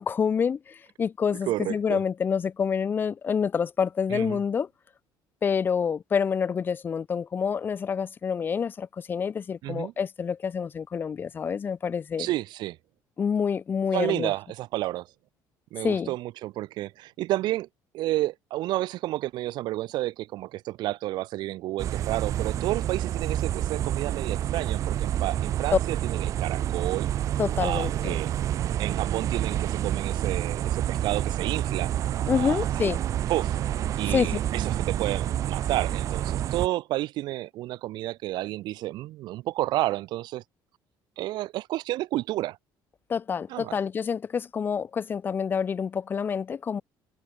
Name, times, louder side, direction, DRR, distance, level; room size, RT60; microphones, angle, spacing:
voice 1, 0.0-4.7 5.4-12.3 13.2-14.3 15.8-16.1 27.4-28.2 32.3-33.0 34.1-34.3 43.1-46.8, left 6 dB, 25° left, 1.2 m, -27 dB
voice 2, 1.5-2.0 4.1-4.4 9.6-9.9 12.2-12.8 13.9-15.1 15.7-17.7 17.9-27.1 27.6-28.3 28.8-31.9 32.3-32.9 33.3-33.6 34.0-40.4 41.2-42.6 43.5-43.8, right 16 dB, 65° right, 3.9 m, -31 dB
sound 1, 21.8-36.7, right 11 dB, 40° right, 0.6 m, -28 dB
cardioid pair, 175°, 8 cm